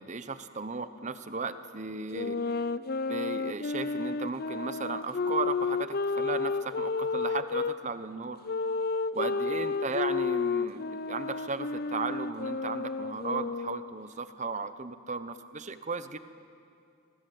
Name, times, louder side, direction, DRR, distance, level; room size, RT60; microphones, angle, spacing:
voice 1, 0.0-2.4 3.1-8.4 8.7-8.8 9.1-16.2, right 4 dB, 35° right, 11 dB, 0.9 m, -35 dB
sound 1, 2.1-7.7 8.4-14.0, left 4 dB, 45° left, 0.5 m, -31 dB
28.5 x 20.0 x 7.9 m, 2.4 s
head